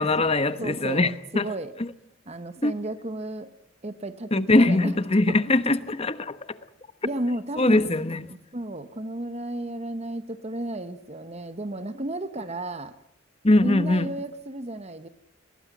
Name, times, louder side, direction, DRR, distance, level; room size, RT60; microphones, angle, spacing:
voice 1, 0.0-1.5 2.6-2.7 4.3-6.5 7.6-8.2 13.4-14.1, left 2 dB, 30° left, 1.1 m, -22 dB
voice 2, 0.6-1.7 2.3-3.5 3.8-5.0 5.3-5.4 7.0-8.0 8.3-12.9 13.6-15.1, right 1 dB, 35° right, 1.1 m, -33 dB
21.5 x 18.5 x 9.3 m
head